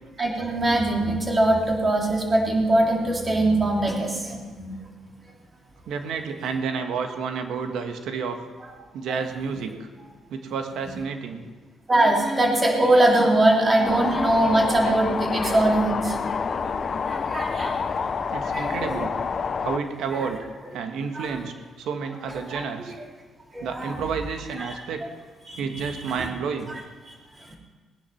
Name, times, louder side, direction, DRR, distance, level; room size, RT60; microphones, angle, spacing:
voice 1, 0.2-4.8 9.5-9.6 10.8-10.9 11.9-16.4 17.1-17.8 18.5-18.9 20.1-20.3 21.1-21.4 22.3-22.6 23.5-24.1 24.5-24.7 25.4-26.3 27.1-27.2, right 1 dB, 30° right, -1 dB, 3.6 m, -22 dB
voice 2, 5.9-8.4 8.9-9.9 10.3-11.4 18.3-19.1 19.6-20.4 20.7-22.9 23.6-25.0 25.6-26.7, right 5 dB, 80° right, 6 dB, 1.6 m, -30 dB
sound 1, 13.8-19.8, left 5 dB, 45° left, 0.8 m, -28 dB
18.5 x 10.0 x 5.9 m, 1.4 s
cardioid pair, 90°, 0 cm